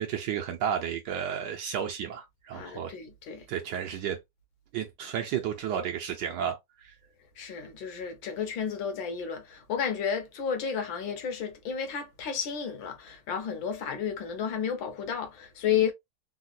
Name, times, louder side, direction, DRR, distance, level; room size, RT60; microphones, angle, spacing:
voice 1, 0.0-2.9 3.5-4.2 4.7-6.9, right 9 dB, 75° right, 1.1 m, -32 dB
voice 2, 2.5-3.5 7.4-15.9, left 7 dB, 70° left, 1.5 m, -32 dB
3.8 x 2.2 x 2.6 m
omnidirectional pair, 2.2 m